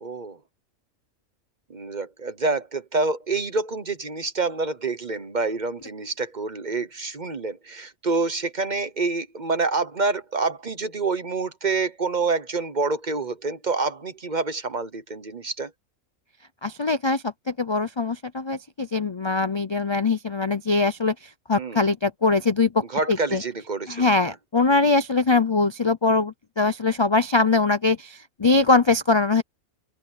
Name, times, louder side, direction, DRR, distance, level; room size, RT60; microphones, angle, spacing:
voice 1, 0.0-0.4 1.7-15.7 21.5-21.8 22.9-24.3, right 3 dB, 35° right, 1.1 m, -27 dB
voice 2, 16.6-23.4 23.9-29.4, left 3 dB, 45° left, 0.3 m, -22 dB
open air
omnidirectional pair, 1.5 m